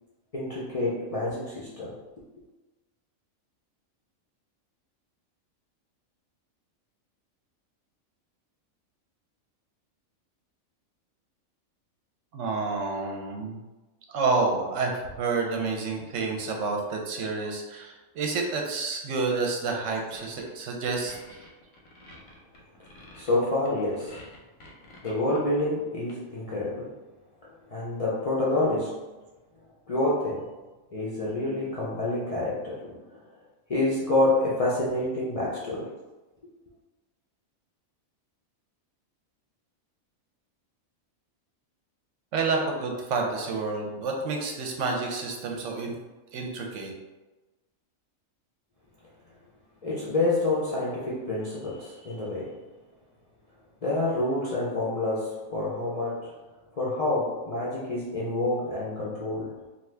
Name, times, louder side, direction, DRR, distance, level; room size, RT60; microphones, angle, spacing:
voice 1, 0.3-2.0 23.1-24.2 25.0-26.9 27.4-29.1 29.9-30.6 30.9-33.2 33.7-35.9 49.8-52.6 53.8-56.4 56.7-59.6, left 2 dB, 70° left, -8 dB, 0.3 m, -28 dB
voice 2, 12.3-13.6 14.1-21.1 42.3-45.9 46.3-46.9, right 4 dB, 70° right, 1 dB, 0.9 m, -29 dB
sound 1, 20.1-20.5 20.8-25.6 26.1-26.5, left 2 dB, 90° left, 1.2 m, -49 dB
2.7 x 2.4 x 3.2 m, 1.1 s
omnidirectional pair, 1.4 m